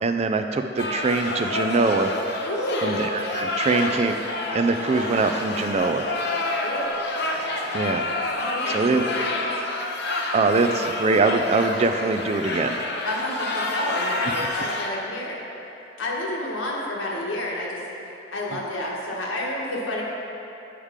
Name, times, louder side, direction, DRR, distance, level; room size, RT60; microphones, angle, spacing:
voice 1, 0.0-2.1 2.8-4.1 4.5-6.0 7.7-8.1 8.7-9.0 10.3-12.8, right 3 dB, 35° right, 6 dB, 0.4 m, -23 dB
sound 1, 0.8-14.9, left 2 dB, 60° left, 0.6 m, -28 dB
voice 2, 2.4-3.1 3.6-3.8 6.6-7.0 8.3-9.6 13.0-15.4 16.0-20.0, left 1 dB, 90° left, -3 dB, 1.3 m, -30 dB
Laughter / Crowd, 4.2-10.0, right 1 dB, 5° right, 1.6 m, -40 dB
7.3 x 4.9 x 5.0 m, 2.9 s
head